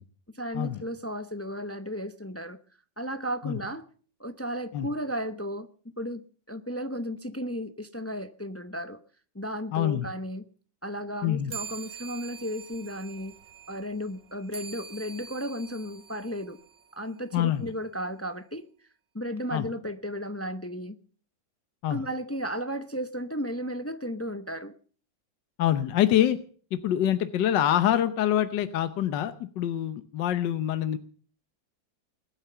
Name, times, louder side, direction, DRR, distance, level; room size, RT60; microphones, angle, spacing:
voice 1, 0.3-2.6 3.0-3.8 4.2-5.7 6.0-9.0 9.3-10.4 10.8-13.3 13.7-16.6 16.9-18.7 19.1-21.0 21.9-24.7, equal, 20° left, 10 dB, 0.3 m, -34 dB
voice 2, 9.7-10.1 11.2-11.5 17.3-17.7 19.5-19.7 21.8-22.0 25.6-26.4 26.7-31.0, left 11 dB, 75° left, 11 dB, 1.5 m, -25 dB
sound 1, 11.5-17.3, right 6 dB, 45° right, 1.9 m, -45 dB
21.0 x 9.2 x 6.8 m, 0.44 s
omnidirectional pair, 2.0 m